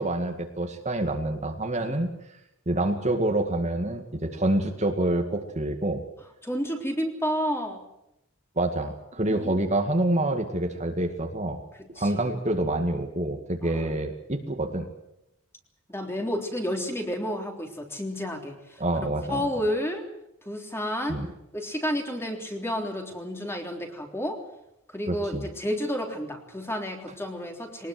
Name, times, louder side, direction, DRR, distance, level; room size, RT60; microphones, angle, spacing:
voice 1, 0.0-2.1 2.7-6.0 8.6-11.6 12.0-14.9 18.8-19.5 21.1-21.3 25.1-25.5, right 1 dB, 35° right, 4 dB, 2.2 m, -27 dB
voice 2, 6.4-7.8 9.3-9.7 11.8-12.2 13.6-13.9 15.9-18.8 19.3-20.0 20.5-21.2 21.5-24.4 24.9-27.9, equal, 10° left, 3 dB, 3.5 m, -31 dB
23.0 x 19.5 x 7.8 m, 0.83 s
head